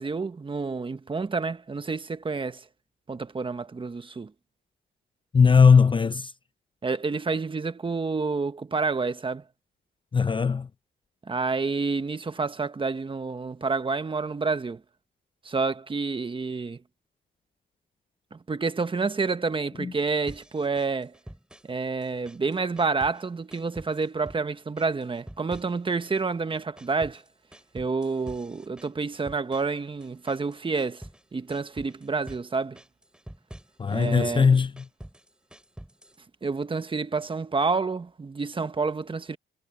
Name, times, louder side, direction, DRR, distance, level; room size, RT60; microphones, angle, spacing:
voice 1, 0.0-2.6 3.1-4.3 6.8-9.4 11.3-14.8 15.4-16.8 18.3-21.1 21.6-27.2 27.7-31.0 31.3-32.8 33.9-34.5 36.4-39.4, right 4 dB, 25° right, 1.3 m, -29 dB
voice 2, 5.3-6.3 10.1-10.7 19.8-19.9 33.8-34.7, left 5 dB, 25° left, 0.5 m, -19 dB
sound 1, 20.3-21.8 22.0-23.2 23.5-24.4 24.8-26.2 26.5-31.2 31.5-32.5 32.8-34.1 34.5-36.2, right 1 dB, 5° right, 5.9 m, -47 dB
cardioid pair, 90°, 20 cm